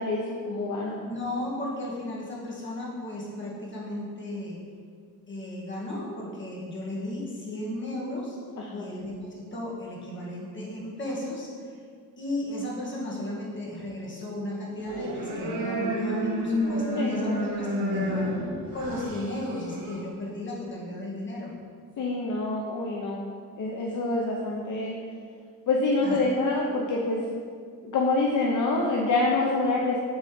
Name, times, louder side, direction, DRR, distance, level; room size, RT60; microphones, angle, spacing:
voice 1, 0.0-1.0 8.6-8.9 16.9-17.5 22.0-23.2 23.6-25.0 25.7-27.4 27.8-30.0, left 2 dB, 55° left, -2 dB, 0.9 m, -26 dB
voice 2, 1.0-4.6 5.3-8.4 8.7-11.8 12.2-18.4 18.7-21.5 26.0-26.2, left 1 dB, 30° left, -5 dB, 2.1 m, -34 dB
sound 1, 14.8-20.0, equal, 75° right, 2.0 m, -30 dB
8.7 x 4.0 x 7.0 m, 2.1 s
wide cardioid pair, 150°, 35 cm